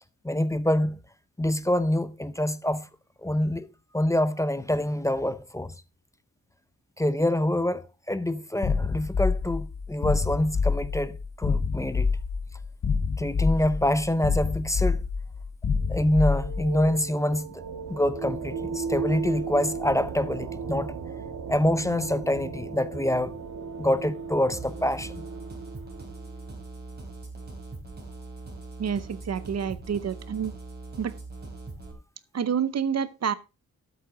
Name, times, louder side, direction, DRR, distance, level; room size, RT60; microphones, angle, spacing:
voice 1, 0.2-1.0 1.4-2.9 3.2-3.7 3.9-5.7 7.0-12.1 13.2-15.0 15.9-17.6 17.9-20.9 21.5-23.3 23.8-25.2, left 1 dB, 10° left, 0.5 m, -26 dB
sound 1, 8.6-16.9, left 5 dB, 50° left, 1.3 m, -27 dB
sound 2, 15.8-26.4, right 5 dB, 70° right, 1.8 m, -36 dB
sound 3, 24.5-31.9, right 3 dB, 30° right, 3.7 m, -41 dB
voice 2, 28.8-30.5 31.0-31.1 32.3-33.3, right 7 dB, 50° right, 0.8 m, -28 dB
12.5 x 8.1 x 3.8 m
wide cardioid pair, 175°, 34 cm